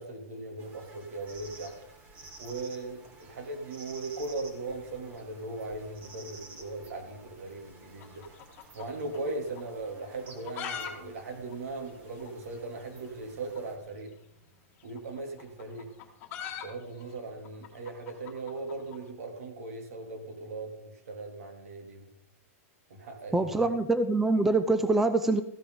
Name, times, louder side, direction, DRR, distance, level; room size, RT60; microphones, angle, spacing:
voice 1, 0.0-1.7 2.4-8.2 8.7-14.1 14.8-15.9 16.6-22.1 22.9-23.7, right 3 dB, 70° right, 3 dB, 3.0 m, -39 dB
sound 1, 0.6-13.8, right 3 dB, 20° right, 1.7 m, -52 dB
sound 2, 8.0-9.3 9.6-9.7 10.2-10.9 11.2-11.3 11.5-11.6 12.2-12.3 13.5-13.7 14.8-19.0, left 8 dB, 25° left, 1.9 m, -41 dB
voice 2, 23.3-25.4, right 2 dB, 5° right, 10 dB, 0.4 m, -24 dB
14.5 x 10.5 x 3.9 m, 0.80 s
supercardioid pair, 165°, 8 cm